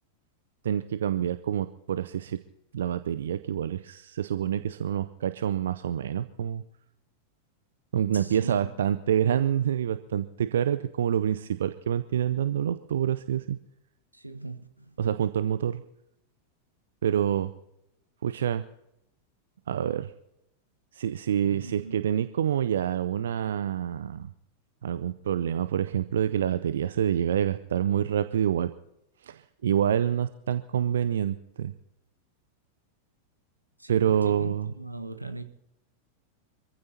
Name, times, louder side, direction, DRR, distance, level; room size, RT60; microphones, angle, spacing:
voice 1, 0.6-2.4 2.7-6.6 7.9-13.6 15.0-15.8 17.0-17.5 18.2-18.6 19.7-20.1 20.9-24.3 24.8-28.7 29.2-31.7 33.9-34.7, right 9 dB, 65° right, 13 dB, 0.5 m, -27 dB
voice 2, 8.1-8.7 14.1-14.9 21.4-21.9 33.8-35.4, right 2 dB, 85° right, 9 dB, 1.2 m, -38 dB
26.0 x 15.0 x 2.8 m, 0.83 s
figure-of-eight pair, 90°, 0 cm